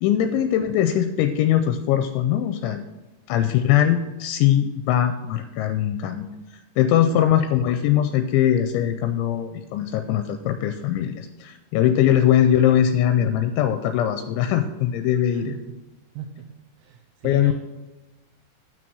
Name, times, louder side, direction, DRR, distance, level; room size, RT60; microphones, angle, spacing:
voice 1, 0.0-2.8 3.3-15.5 17.2-17.5, left 10 dB, 85° left, 7 dB, 2.9 m, -21 dB
voice 2, 16.8-17.5, right 10 dB, 80° right, 1 dB, 3.2 m, -39 dB
9.1 x 6.0 x 6.2 m, 1.1 s
omnidirectional pair, 5.4 m